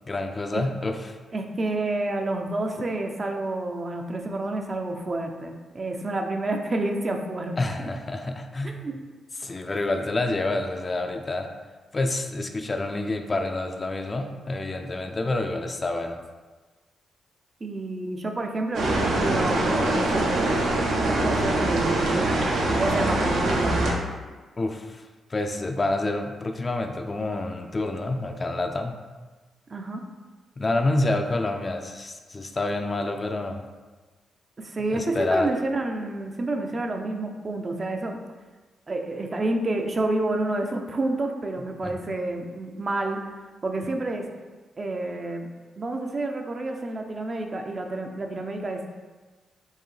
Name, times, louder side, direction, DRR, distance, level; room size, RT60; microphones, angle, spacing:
voice 1, 0.1-1.2 7.6-8.8 9.4-11.5 11.9-16.2 24.6-25.0 25.3-29.0 30.6-33.6 34.9-35.5 41.8-41.9, left 2 dB, 35° left, 5 dB, 0.4 m, -28 dB
voice 2, 1.3-7.9 8.6-8.9 17.6-20.5 21.0-24.0 29.7-30.0 34.6-38.2 38.9-43.2 43.6-44.3 44.8-45.5 45.8-48.9, right 2 dB, 40° right, 3 dB, 0.5 m, -29 dB
sound 1, 18.7-23.9, right 2 dB, 80° right, 0.7 m, -23 dB
4.6 x 2.7 x 3.2 m, 1.3 s
cardioid pair, 75°, 0 cm